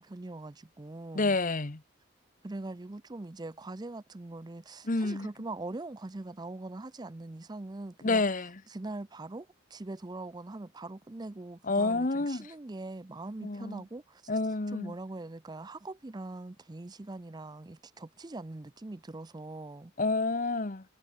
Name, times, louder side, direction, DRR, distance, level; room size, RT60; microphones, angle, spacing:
voice 1, 0.0-1.4 2.4-8.3 8.7-14.2 14.7-19.9, right 2 dB, 20° right, 0.5 m, -42 dB
voice 2, 1.1-1.8 4.8-5.3 8.0-8.6 11.6-12.5 13.4-13.8 14.3-14.9 20.0-20.8, left 3 dB, 40° left, 1.1 m, -29 dB
head